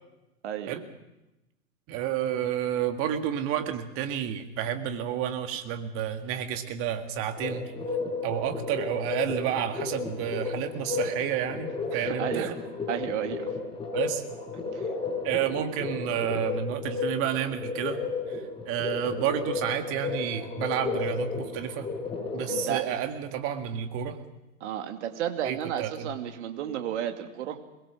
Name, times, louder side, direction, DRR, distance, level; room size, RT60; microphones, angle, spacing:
voice 1, 0.4-0.8 11.9-12.5 12.9-13.5 14.7-14.9 22.5-22.8 24.6-27.6, right 10 dB, 45° right, 6 dB, 2.5 m, -32 dB
voice 2, 1.9-7.7 8.2-12.5 13.9-14.2 15.2-18.0 18.3-21.9 22.3-24.2 25.4-26.1, right 9 dB, 30° right, 7 dB, 1.9 m, -30 dB
sound 1, 7.4-22.7, left 4 dB, 10° left, 6.4 m, -33 dB
22.5 x 21.5 x 6.3 m, 0.97 s
figure-of-eight pair, 115°, 47 cm